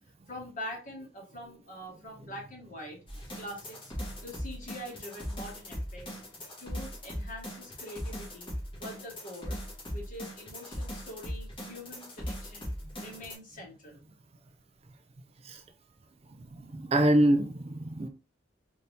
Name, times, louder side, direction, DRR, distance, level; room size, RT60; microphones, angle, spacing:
voice 1, 0.3-3.0 3.4-3.9 4.2-6.2 6.6-9.6 9.9-12.7 12.9-14.0, left 1 dB, 45° left, 1.7 m, -44 dB
sound 1, 3.1-13.3, equal, 25° left, 1.6 m, -39 dB
voice 2, 16.4-18.1, right 1 dB, 30° right, 0.4 m, -25 dB
4.2 x 2.7 x 3.4 m
head